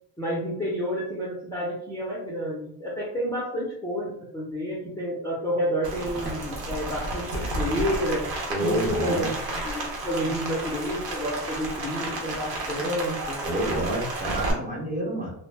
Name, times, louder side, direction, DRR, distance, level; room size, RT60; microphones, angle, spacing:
voice 1, 0.2-8.2 8.6-13.4, equal, 10° left, -6 dB, 0.6 m, -29 dB
Rain, 5.8-14.5, right 2 dB, 85° right, 0.9 m, -32 dB
voice 2, 8.5-9.3 13.4-15.3, right 1 dB, 20° right, -3 dB, 0.8 m, -28 dB
2.2 x 2.0 x 3.3 m, 0.70 s
cardioid pair, 100°, 43 cm